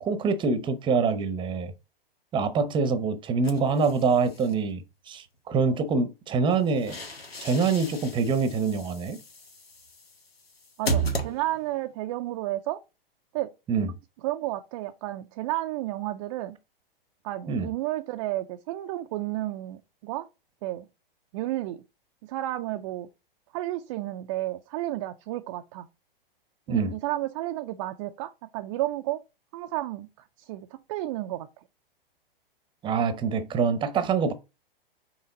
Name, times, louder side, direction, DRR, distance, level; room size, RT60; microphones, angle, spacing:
voice 1, 0.0-1.7 2.3-7.0 7.4-9.2 13.7-13.9 17.5-17.7 26.7-26.9 32.8-34.3, right 5 dB, 15° right, 0.8 m, -25 dB
sound 1, 3.4-4.5 6.5-11.9, right 2 dB, 85° left, 1.6 m, -35 dB
voice 2, 10.8-12.8 13.3-13.5 14.2-16.6 17.2-20.3 20.6-20.9 21.3-21.8 22.2-23.1 23.5-25.9 26.7-29.2 29.5-30.1 30.4-31.5, right 16 dB, 35° right, 0.5 m, -32 dB
5.8 x 4.3 x 3.9 m
hypercardioid pair, 115°, 29 cm